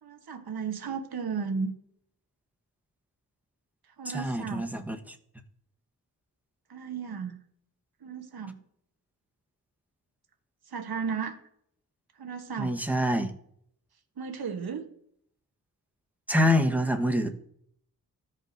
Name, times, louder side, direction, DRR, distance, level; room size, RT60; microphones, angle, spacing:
voice 1, 0.0-1.7 4.0-4.7 6.7-7.4 8.0-8.6 10.7-11.4 12.2-12.7 14.2-14.9, right 6 dB, 70° right, 5 dB, 1.1 m, -34 dB
voice 2, 4.0-5.1 12.6-13.3 16.3-17.3, left 1 dB, 5° right, 4 dB, 1.2 m, -26 dB
13.5 x 5.4 x 2.6 m, 0.68 s
cardioid pair, 45°, 39 cm